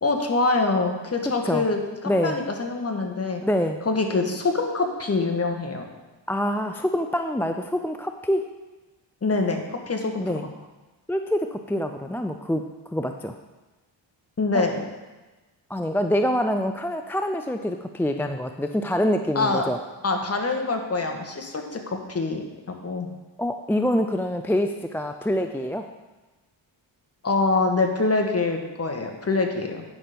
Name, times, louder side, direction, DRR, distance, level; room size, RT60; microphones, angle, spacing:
voice 1, 0.0-3.4 3.8-5.8 9.2-10.5 14.4-14.9 19.3-19.7 20.0-23.1 27.2-29.8, left 3 dB, 30° left, 3 dB, 1.5 m, -25 dB
voice 2, 2.1-2.4 3.4-3.8 6.3-8.5 10.2-10.4 11.1-13.4 14.5-14.6 15.7-19.8 23.4-25.9, equal, 5° left, 6 dB, 0.4 m, -25 dB
9.3 x 5.9 x 5.1 m, 1.2 s
cardioid pair, 75°, 46 cm